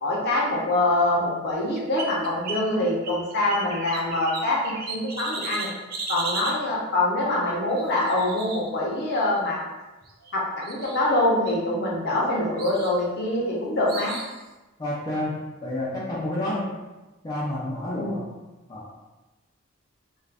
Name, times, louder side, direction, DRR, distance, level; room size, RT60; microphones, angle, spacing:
voice 1, 0.0-5.7 6.1-9.6 10.3-14.2 18.0-18.2, left 1 dB, 50° left, -4 dB, 0.7 m, -24 dB
Birds in Cressent Beach Florida, 1.5-2.7 3.0-6.6 7.7-9.2 10.1-10.3 10.6-11.2 11.5-12.2 12.6-13.0 13.9-14.4, right 3 dB, 45° right, 0.4 m, -36 dB
voice 2, 14.8-16.7 17.2-18.2 18.7-18.9, left 1 dB, 20° left, -7 dB, 0.4 m, -29 dB
2.4 x 2.4 x 3.3 m, 1.1 s
head